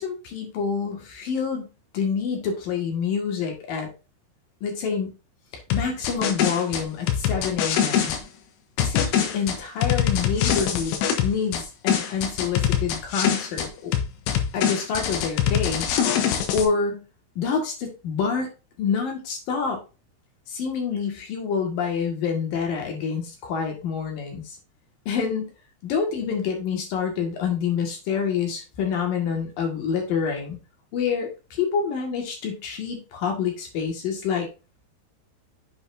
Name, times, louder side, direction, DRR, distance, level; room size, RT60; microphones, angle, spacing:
voice 1, 0.0-1.7 1.9-3.9 4.6-5.1 5.7-8.1 8.8-13.9 14.5-15.9 16.2-17.0 17.4-18.5 18.8-19.8 20.5-24.5 25.1-25.5 25.8-30.6 30.9-34.5, left 6 dB, 55° left, 2 dB, 3.1 m, -27 dB
sound 1, 5.7-8.2 8.8-11.6 11.9-13.7 13.9-16.7, left 9 dB, 75° left, 3.3 m, -23 dB
8.1 x 6.4 x 2.7 m, 0.29 s
omnidirectional pair, 5.7 m